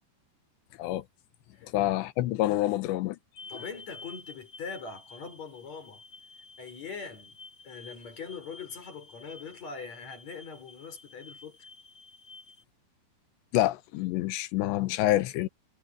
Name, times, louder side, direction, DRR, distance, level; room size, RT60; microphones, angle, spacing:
voice 1, 1.6-3.2 13.5-15.5, left 15 dB, 80° left, 3.2 m, -27 dB
sound 1, 3.4-12.6, left 3 dB, 20° left, 3.9 m, -51 dB
voice 2, 3.5-6.0 6.6-7.4 7.6-11.6, left 5 dB, 40° left, 7.0 m, -42 dB
omnidirectional pair, 5.1 m